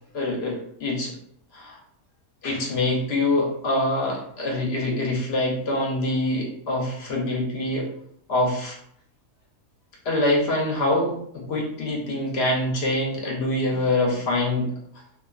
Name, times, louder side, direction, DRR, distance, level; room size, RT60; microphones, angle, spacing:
voice 1, 0.1-1.1 1.5-1.8 2.4-7.9 8.3-8.8 10.0-14.7, left 1 dB, 60° left, -1 dB, 0.7 m, -25 dB
2.3 x 2.3 x 2.3 m, 0.67 s
omnidirectional pair, 1.5 m